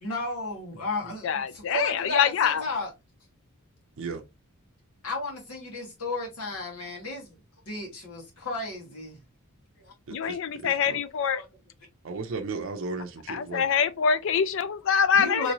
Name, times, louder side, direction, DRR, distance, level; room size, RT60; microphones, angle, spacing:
voice 1, 0.0-2.9 5.0-9.2 9.8-9.9 11.3-11.5 15.1-15.5, left 2 dB, 90° left, 1.5 m, -34 dB
voice 2, 1.2-2.6 10.1-11.4 13.3-15.5, left 7 dB, 60° left, 0.4 m, -25 dB
voice 3, 10.1-11.0 12.0-13.6, right 4 dB, 60° right, 0.5 m, -35 dB
3.0 x 3.0 x 2.7 m
head